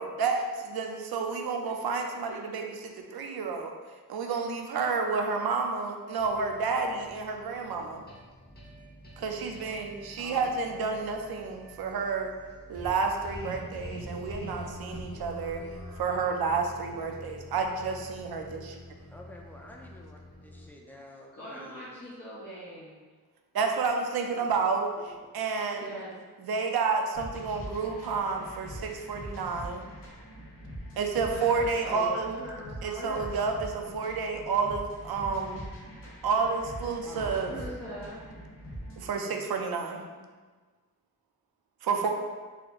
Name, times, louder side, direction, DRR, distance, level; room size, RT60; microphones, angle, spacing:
voice 1, 0.0-3.7 4.1-8.0 9.2-12.3 12.7-15.6 16.0-18.8 23.5-26.0 26.4-29.8 31.0-32.3 32.8-35.6 36.2-37.6 39.0-40.0 41.8-42.1, right 4 dB, 75° right, 3 dB, 0.5 m, -30 dB
sound 1, 6.2-20.7, equal, 25° left, 0.8 m, -45 dB
voice 2, 10.2-11.1 19.1-21.9 25.2-25.3 31.9-32.2 37.0-37.8 39.2-39.5, left 1 dB, 5° left, -1 dB, 0.3 m, -46 dB
voice 3, 21.3-23.0 25.8-26.1 31.2-33.3 37.1-38.2 40.1-40.2, equal, 40° left, -10 dB, 1.4 m, -42 dB
sound 2, 27.1-39.2, equal, 60° left, 1.2 m, -43 dB
4.2 x 2.9 x 2.4 m, 1.4 s
wide cardioid pair, 145°, 37 cm